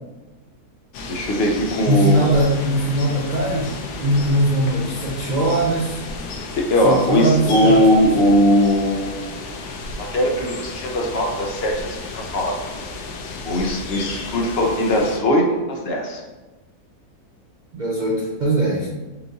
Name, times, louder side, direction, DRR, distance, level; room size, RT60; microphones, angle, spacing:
sound 1, 0.9-15.2, left 3 dB, 85° left, 1.1 m, -33 dB
voice 1, 1.1-2.3 6.5-9.2 10.0-12.5 13.4-16.2, equal, 55° left, 0 dB, 0.7 m, -19 dB
voice 2, 1.8-6.0 6.8-8.3 17.7-18.9, right 1 dB, 65° right, -4 dB, 0.4 m, -21 dB
4.5 x 2.6 x 3.9 m, 1.2 s
omnidirectional pair, 1.6 m